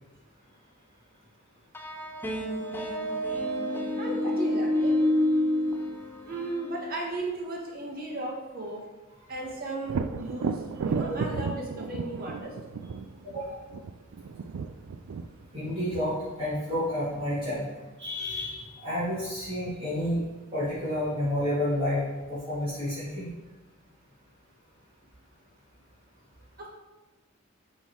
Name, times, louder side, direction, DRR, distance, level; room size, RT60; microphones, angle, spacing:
sound 1, 1.7-6.9, left 1 dB, 10° left, 0.6 m, -28 dB
voice 1, 4.0-4.9 6.2-8.8 9.3-12.5 26.6-26.7, right 2 dB, 45° right, -2 dB, 1.6 m, -35 dB
Thunder, 9.9-17.5 21.2-21.3 21.8-22.6, right 5 dB, 85° right, 0.4 m, -35 dB
voice 2, 13.2-13.6 15.5-17.7 18.0-20.2 20.5-23.3, left 1 dB, 25° right, -12 dB, 2.2 m, -30 dB
8.3 x 3.7 x 4.6 m, 1.2 s
head